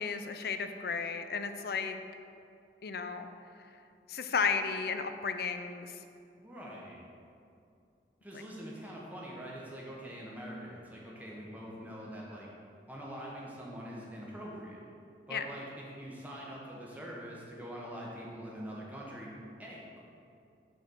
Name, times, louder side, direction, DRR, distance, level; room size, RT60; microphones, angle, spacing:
voice 1, 0.0-2.0 2.8-3.3 4.1-6.0 15.3-15.5, left 5 dB, 55° left, 8 dB, 0.4 m, -33 dB
voice 2, 6.4-7.0 8.2-12.5 12.9-14.8 15.3-19.3 19.6-20.0, equal, 10° right, -4 dB, 1.2 m, -44 dB
6.7 x 4.2 x 6.3 m, 2.5 s
head